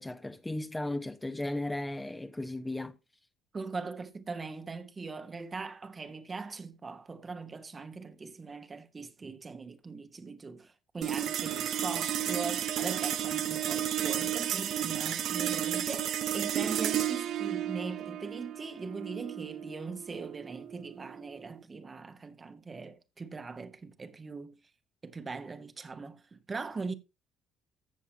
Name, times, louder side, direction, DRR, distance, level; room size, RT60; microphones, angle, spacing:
voice 1, 0.0-3.0, left 1 dB, 15° left, 0.9 m, -35 dB
voice 2, 3.5-24.6 25.0-26.9, right 4 dB, 30° right, 1.1 m, -41 dB
sound 1, 11.0-21.6, right 11 dB, 60° right, 0.6 m, -33 dB
14.0 x 7.2 x 2.8 m
hypercardioid pair, 50°, 0 cm